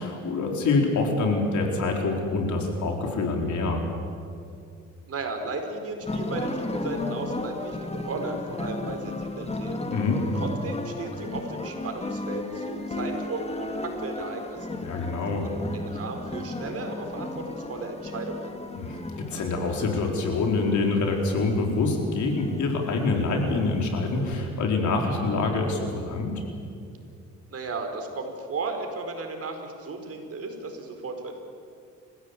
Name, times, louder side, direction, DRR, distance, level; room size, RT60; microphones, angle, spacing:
voice 1, 0.0-3.8 9.9-10.2 14.8-15.5 18.7-26.3, left 3 dB, 70° left, 1 dB, 4.6 m, -26 dB
voice 2, 5.1-9.8 10.3-14.8 15.7-18.6 27.5-31.3, right 3 dB, 50° right, 4 dB, 4.5 m, -35 dB
sound 1, 6.0-24.3, left 2 dB, 20° left, 2.3 m, -35 dB
29.5 x 16.0 x 8.5 m, 2.4 s
cardioid pair, 90°, 30 cm